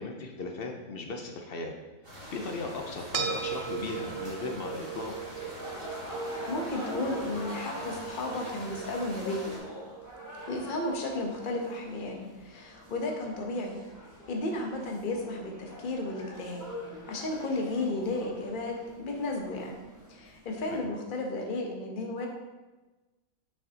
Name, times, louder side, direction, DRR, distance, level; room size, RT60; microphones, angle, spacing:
voice 1, 0.0-1.7 2.3-5.1 20.7-20.9, left 3 dB, 55° left, 3 dB, 0.6 m, -37 dB
sound 1, 2.0-9.6, equal, 35° right, 1.8 m, -45 dB
sound 2, 2.1-20.8, left 1 dB, 15° right, 1.2 m, -45 dB
sound 3, 3.1-11.7, right 8 dB, 70° right, 0.6 m, -40 dB
voice 2, 6.5-9.4 10.4-13.8 14.3-16.6 17.0-22.3, left 2 dB, 40° left, 1 dB, 0.9 m, -33 dB
6.6 x 6.0 x 2.8 m, 1.2 s
omnidirectional pair, 1.6 m